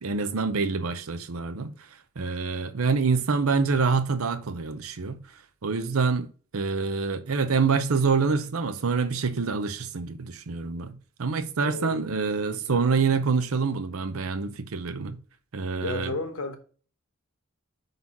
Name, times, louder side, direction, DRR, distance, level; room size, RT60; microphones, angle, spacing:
voice 1, 0.0-1.7 2.2-5.2 5.6-6.3 6.5-15.2 15.5-16.1, right 4 dB, 85° right, 0.7 m, -26 dB
voice 2, 11.6-12.8 15.8-16.6, left 2 dB, 80° left, 1.1 m, -34 dB
5.6 x 4.0 x 5.9 m
head